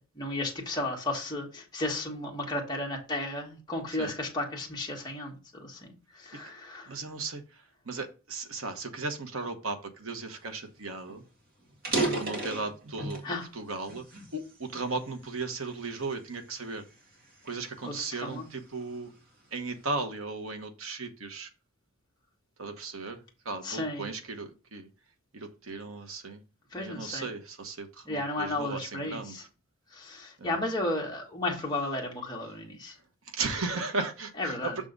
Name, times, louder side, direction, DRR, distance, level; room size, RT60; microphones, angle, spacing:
voice 1, 0.0-6.9 11.9-12.3 13.2-13.5 17.8-18.5 23.6-24.1 26.7-27.3 28.0-29.4 29.9-33.0 34.4-34.8, left 2 dB, 20° left, 1.7 m, -34 dB
voice 2, 6.9-7.4 7.9-11.2 12.1-13.2 13.5-14.0 14.3-16.8 17.4-19.1 19.5-21.5 22.6-23.2 23.4-24.9 25.4-26.4 26.8-29.4 30.4-30.6 33.3-34.7, right 3 dB, 70° right, 1.1 m, -36 dB
sound 1, 10.7-10.8 11.1-11.2 11.7-13.3 13.8-15.1 15.7-16.0 16.6-18.6, right 2 dB, 40° right, 1.9 m, -33 dB
6.6 x 3.7 x 5.2 m
head